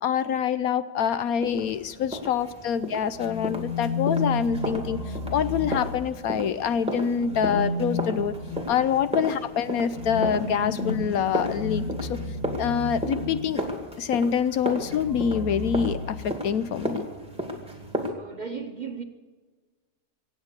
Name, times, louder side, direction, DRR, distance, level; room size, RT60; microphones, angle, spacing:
voice 1, 0.0-8.3 8.7-12.2 12.6-13.6 14.0-17.1, left 7 dB, 70° left, 1.0 m, -26 dB
sound 1, 1.4-18.1, equal, 5° right, 2.2 m, -35 dB
sound 2, 3.2-6.5 7.1-13.8 14.7-16.7, left 3 dB, 45° left, 2.0 m, -32 dB
voice 2, 18.1-19.0, right 5 dB, 35° right, 0.9 m, -36 dB
24.5 x 8.9 x 6.7 m
omnidirectional pair, 1.7 m